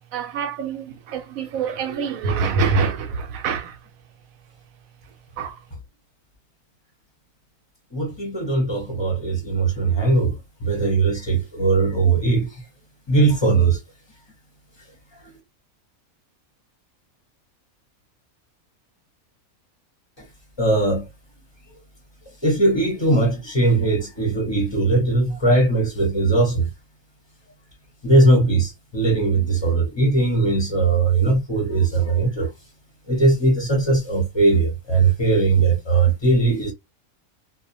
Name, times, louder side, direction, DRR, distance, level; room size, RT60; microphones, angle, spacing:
voice 1, 0.1-3.8 5.0-5.6, right 5 dB, 70° right, 0.9 m, -25 dB
voice 2, 7.9-10.4 10.6-12.5 13.1-13.8 20.6-21.0 22.4-26.7 28.0-32.5 33.1-36.7, right 3 dB, 25° left, 0.6 m, -19 dB
2.4 x 2.1 x 2.6 m
omnidirectional pair, 1.6 m